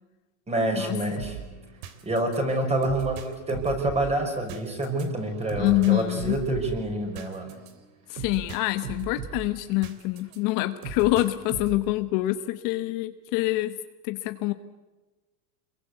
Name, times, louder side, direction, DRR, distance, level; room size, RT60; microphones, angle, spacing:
voice 1, 0.5-1.4 2.0-7.6, right 1 dB, 15° right, 4 dB, 5.8 m, -27 dB
sound 1, 1.2-10.4 10.8-11.9, right 7 dB, 65° right, 3.4 m, -39 dB
voice 2, 5.6-6.3 8.1-13.7 14.0-14.5, left 18 dB, 50° left, 10 dB, 1.2 m, -26 dB
27.5 x 23.0 x 8.2 m, 1.2 s
supercardioid pair, 155°, 45 cm